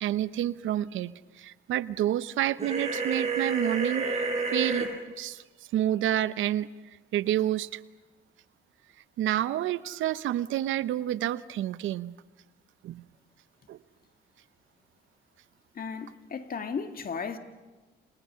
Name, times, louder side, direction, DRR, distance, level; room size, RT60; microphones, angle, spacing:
voice 1, 0.0-1.1 1.4-4.9 5.2-5.4 5.7-6.7 7.1-7.8 9.2-12.1 12.8-13.0 13.7-13.8, right 12 dB, 80° right, 0.8 m, -29 dB
sound 1, 2.6-4.9, right 4 dB, 30° right, 7.3 m, -29 dB
voice 2, 15.8-17.4, left 5 dB, 45° left, 2.1 m, -35 dB
29.5 x 28.5 x 5.7 m
cardioid pair, 90°, 20 cm